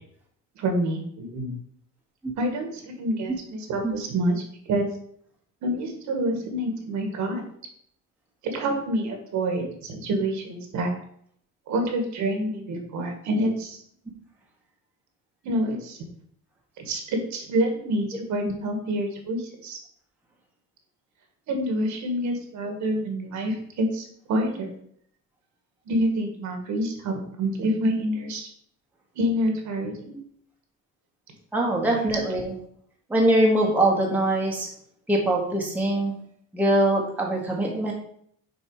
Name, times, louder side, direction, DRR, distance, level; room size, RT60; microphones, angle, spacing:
voice 1, 0.5-1.5 2.3-4.9 5.6-7.4 8.4-10.9 11.7-13.8 15.4-16.0 16.8-19.8 21.5-24.7 25.8-28.5 29.1-30.2, right 1 dB, 60° right, 4 dB, 1.6 m, -27 dB
voice 2, 31.5-32.5 33.1-34.7 35.1-36.1 36.5-37.9, right 1 dB, 5° right, -2 dB, 1.2 m, -22 dB
6.7 x 4.5 x 4.7 m, 0.64 s
cardioid pair, 155°, 33 cm